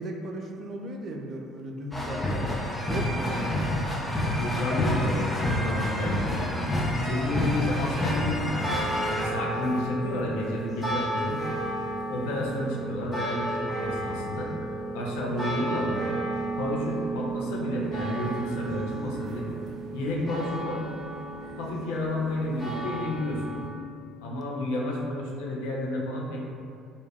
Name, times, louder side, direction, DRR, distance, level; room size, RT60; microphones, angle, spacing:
voice 1, 0.0-3.5, right 1 dB, 45° right, 1 dB, 0.3 m, -36 dB
sound 1, 1.9-9.2, left 1 dB, 10° left, 0.5 m, -28 dB
voice 2, 4.4-6.6 7.0-8.7 9.1-11.4 12.1-14.5 14.9-16.0 16.6-19.5 19.9-20.8 21.6-23.5 24.2-26.4, left 1 dB, 70° left, -2 dB, 0.4 m, -31 dB
sound 2, 6.1-23.7, right 2 dB, 30° left, 1.1 m, -33 dB
2.2 x 2.1 x 3.3 m, 2.3 s
figure-of-eight pair, 55°, 0 cm